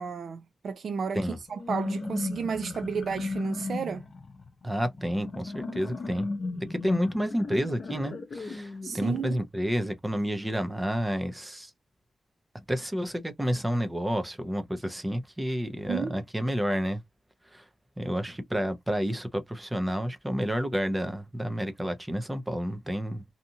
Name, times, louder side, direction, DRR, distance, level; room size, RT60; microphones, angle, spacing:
voice 1, 0.0-1.2 1.5-4.0 8.8-9.4 15.9-16.2, right 6 dB, 60° right, 0.4 m, -32 dB
sound 1, 1.5-9.3, left 3 dB, 45° left, 0.7 m, -36 dB
voice 2, 4.6-6.3 6.7-11.7 12.7-17.0 17.5-17.6 18.0-23.2, equal, 10° right, 0.6 m, -30 dB
2.7 x 2.4 x 2.7 m
wide cardioid pair, 170°, 0 cm